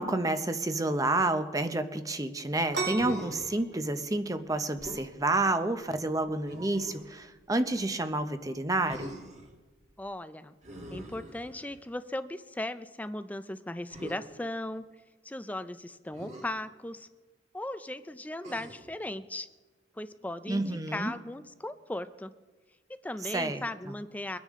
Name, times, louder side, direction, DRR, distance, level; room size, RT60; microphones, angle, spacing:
voice 1, 0.0-9.1 20.5-21.1 23.3-23.6, right 2 dB, 20° right, 9 dB, 0.7 m, -29 dB
sound 1, 2.7-10.1, right 3 dB, 65° right, 2.1 m, -41 dB
Human voice, 2.9-3.6 4.8-5.1 6.5-7.1 8.9-9.5 10.6-11.9 13.9-14.2 16.1-16.5 18.4-18.9 20.5-21.1, equal, 40° right, 1.6 m, -43 dB
voice 2, 10.0-10.5 10.9-14.9 15.2-17.1 17.5-19.5 19.9-22.3 22.9-24.4, left 1 dB, 10° left, 12 dB, 0.4 m, -37 dB
23.5 x 9.9 x 3.7 m, 1.3 s
head